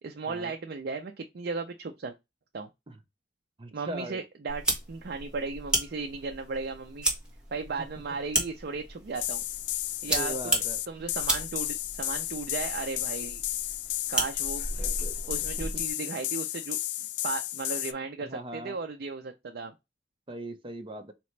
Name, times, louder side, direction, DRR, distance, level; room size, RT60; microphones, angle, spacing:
voice 1, 0.0-2.1 2.5-2.7 3.7-7.1 7.5-9.4 10.0-10.3 10.9-13.4 14.1-14.7 15.3-16.8 17.2-19.7, right 4 dB, 60° right, 0.5 m, -36 dB
voice 2, 3.6-4.2 10.1-10.8 15.6-15.7 18.2-18.8 20.3-21.1, right 1 dB, 30° right, 0.8 m, -38 dB
sound 1, 4.5-15.9, right 1 dB, 5° right, 1.3 m, -34 dB
sound 2, 9.1-17.9, left 14 dB, 75° left, 0.3 m, -33 dB
4.1 x 3.0 x 3.1 m
head